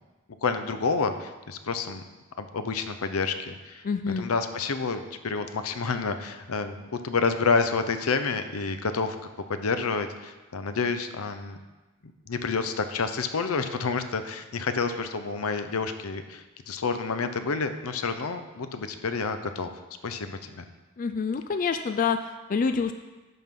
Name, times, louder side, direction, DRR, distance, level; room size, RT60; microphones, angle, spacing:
voice 1, 0.4-2.0 2.4-3.8 4.2-9.2 9.5-11.6 12.3-19.7 20.0-20.6, left 4 dB, 85° left, 9 dB, 0.7 m, -29 dB
voice 2, 3.8-4.3 21.0-22.9, left 5 dB, 40° left, 8 dB, 0.3 m, -27 dB
11.0 x 6.0 x 3.7 m, 1.2 s
head